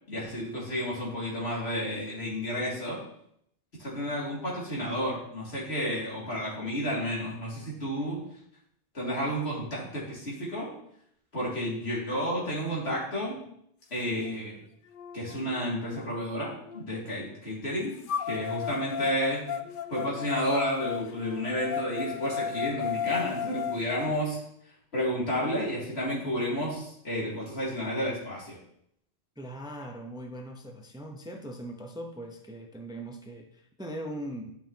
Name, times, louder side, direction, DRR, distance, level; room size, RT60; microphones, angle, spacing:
voice 1, 0.1-3.0 3.8-8.2 8.9-10.7 11.3-13.4 13.9-14.6 15.1-17.9 18.3-19.4 19.9-24.4 24.9-28.6, equal, 85° left, -6 dB, 2.8 m, -31 dB
sound 1, 14.3-14.4 14.9-16.8 18.1-24.1, left 8 dB, 60° left, 0.7 m, -34 dB
voice 2, 29.4-34.5, right 1 dB, 5° right, 3 dB, 0.7 m, -40 dB
11.5 x 5.6 x 2.9 m, 0.71 s
omnidirectional pair, 1.1 m